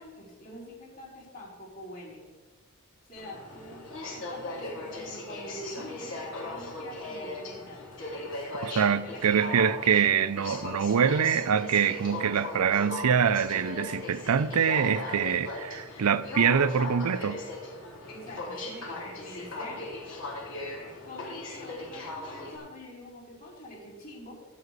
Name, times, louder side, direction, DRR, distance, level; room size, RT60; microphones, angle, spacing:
voice 1, 0.0-2.2 3.0-3.8 4.1-7.9 8.1-8.4 9.0-9.7 18.1-19.8 21.1-24.4, left 1 dB, 40° left, -4 dB, 4.4 m, -45 dB
Aircraft, 3.2-22.6, left 2 dB, 55° left, 3.8 m, -38 dB
voice 2, 8.6-17.4, right 7 dB, 90° right, 15 dB, 0.5 m, -25 dB
14.5 x 5.1 x 8.3 m, 1.2 s
head